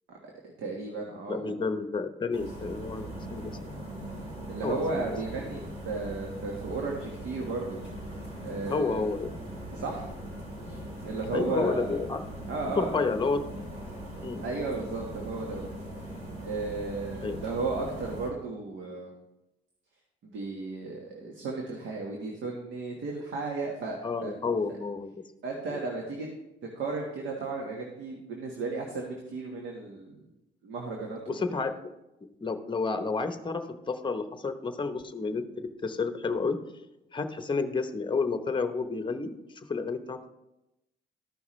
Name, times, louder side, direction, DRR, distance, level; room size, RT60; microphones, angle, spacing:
voice 1, 0.6-1.6 4.5-7.8 8.4-9.0 9.7-10.1 10.6-12.0 12.5-13.1 14.4-15.7 16.4-19.1 20.2-24.3 24.7-24.8 25.4-26.3 26.7-30.2 30.6-31.4, right 3 dB, 70° right, 0 dB, 1.5 m, -34 dB
voice 2, 1.3-3.8 4.6-5.0 8.7-9.5 11.3-12.2 12.8-13.4 14.2-14.4 17.2-17.4 24.0-25.1 25.7-25.8 31.3-31.7 32.4-36.6 37.1-40.3, left 4 dB, 25° left, 8 dB, 0.8 m, -31 dB
sound 1, 2.3-18.3, right 1 dB, 35° right, 3.7 m, -40 dB
13.5 x 5.7 x 3.2 m, 0.93 s
cardioid pair, 90°, 20 cm